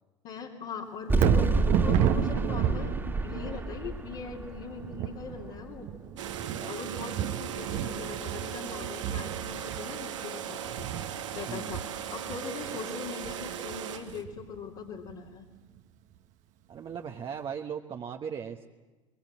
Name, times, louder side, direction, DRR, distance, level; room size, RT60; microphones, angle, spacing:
voice 1, 0.2-2.9 3.2-5.9 6.6-15.5, left 5 dB, 50° left, -4 dB, 2.9 m, -41 dB
sound 1, 1.1-6.3, right 3 dB, 15° right, 2.1 m, -30 dB
Thunder, 1.1-15.3 15.8-15.9, right 10 dB, 50° right, 1.4 m, -33 dB
sound 2, 6.2-14.2, right 9 dB, 75° right, 1.9 m, -38 dB
voice 2, 6.3-6.7 11.5-11.7 16.7-18.7, right 7 dB, 30° right, 2 dB, 1.3 m, -38 dB
26.0 x 22.5 x 7.6 m, 1.2 s
figure-of-eight pair, 75°, 16 cm